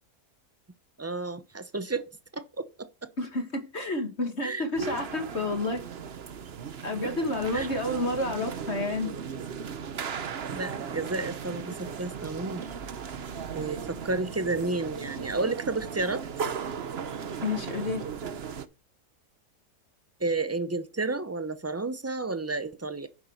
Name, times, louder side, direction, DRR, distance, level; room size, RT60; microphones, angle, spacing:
voice 1, 1.0-3.1 4.4-5.0 7.5-7.7 10.5-12.7 13.5-16.2 20.2-23.1, right 3 dB, 20° right, 0.4 m, -31 dB
voice 2, 3.2-5.8 6.8-9.1 17.4-18.0, left 2 dB, 40° left, 2.3 m, -30 dB
sound 1, 4.8-18.7, right 7 dB, 45° right, 1.0 m, -37 dB
9.9 x 7.1 x 6.6 m
omnidirectional pair, 1.7 m